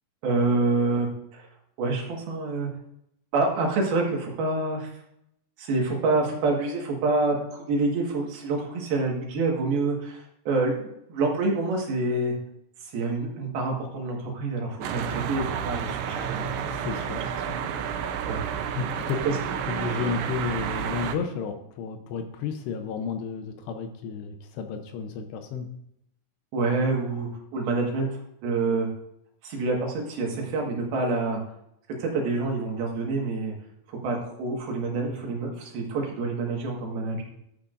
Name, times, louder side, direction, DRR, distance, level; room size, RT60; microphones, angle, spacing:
voice 1, 0.2-1.5 1.8-2.7 3.3-4.9 5.6-12.3 12.9-16.5 18.2-18.4 19.2-19.4 26.5-28.9 29.4-31.4 32.0-33.5 33.9-37.2, right 3 dB, 65° right, 0 dB, 3.4 m, -27 dB
sound 1, 14.8-21.2, right 8 dB, 90° right, 3.1 m, -30 dB
voice 2, 16.6-17.6 18.8-25.7 37.1-37.2, left 6 dB, 80° left, 6 dB, 2.8 m, -33 dB
12.5 x 8.5 x 2.6 m, 0.77 s
omnidirectional pair, 5.0 m